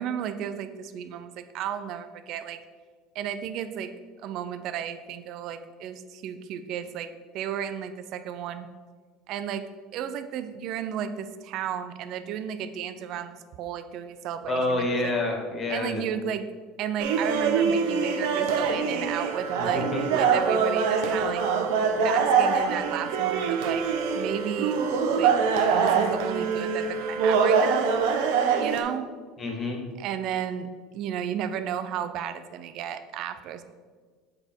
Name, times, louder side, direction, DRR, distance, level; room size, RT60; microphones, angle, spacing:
voice 1, 0.0-2.6 3.1-3.9 4.2-7.1 7.3-8.7 9.3-9.7 9.9-15.1 15.7-16.5 16.8-21.4 22.0-23.8 24.1-24.8 25.2-25.3 25.8-28.0 28.6-29.1 30.0-33.6, right 9 dB, 60° right, 10 dB, 0.5 m, -33 dB
voice 2, 14.5-16.0 19.7-20.0 29.4-29.8, left 2 dB, 30° left, 1 dB, 1.8 m, -27 dB
sound 1, 17.0-28.8, right 6 dB, 80° right, 0.8 m, -24 dB
7.5 x 4.4 x 4.5 m, 1.5 s
supercardioid pair, 115°, 0 cm